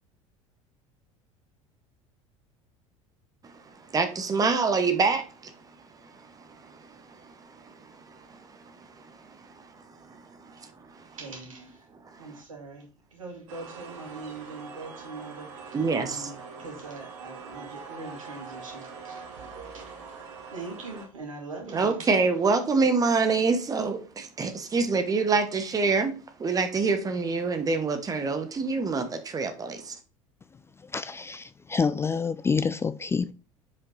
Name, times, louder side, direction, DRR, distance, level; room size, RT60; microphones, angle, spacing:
voice 1, 3.4-5.5 6.0-11.2 12.1-12.4 15.7-16.3 21.7-26.1 26.4-30.0, right 4 dB, 20° right, 1.1 m, -27 dB
voice 2, 11.1-11.9 12.2-19.9 20.5-22.1, right 3 dB, 75° right, 2.4 m, -42 dB
sound 1, 13.5-21.1, right 5 dB, 60° right, 1.8 m, -43 dB
voice 3, 30.8-33.3, left 5 dB, 15° left, 0.4 m, -28 dB
7.2 x 5.1 x 3.9 m
figure-of-eight pair, 70°, 17 cm